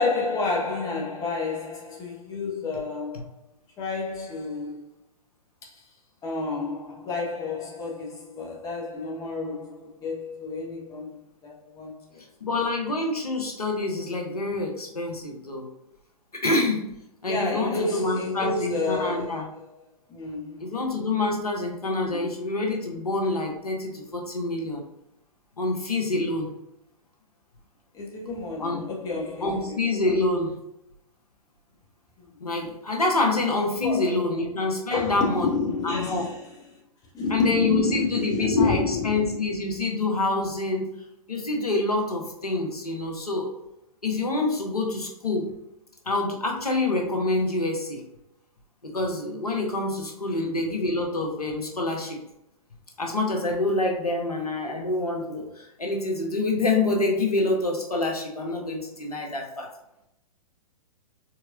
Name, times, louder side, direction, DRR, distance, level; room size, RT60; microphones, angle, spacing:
voice 1, 0.0-3.3 3.8-4.9 5.7-5.8 6.2-12.2 17.2-19.8 20.1-20.8 22.0-22.3 27.9-29.8 32.2-32.3 33.8-34.4 34.9-36.5 37.1-39.5 50.3-50.6, left 3 dB, 20° left, 1.1 m, -30 dB
voice 2, 12.4-15.7 16.3-16.9 17.2-19.4 20.6-24.8 25.6-26.5 28.6-28.9 29.4-30.6 32.4-35.5 35.8-36.3 37.3-40.9 41.3-43.5 44.0-45.5 46.0-48.0 48.8-52.2 53.0-59.7, left 2 dB, 80° left, 1.2 m, -26 dB
4.5 x 4.2 x 2.4 m
figure-of-eight pair, 115°, 19 cm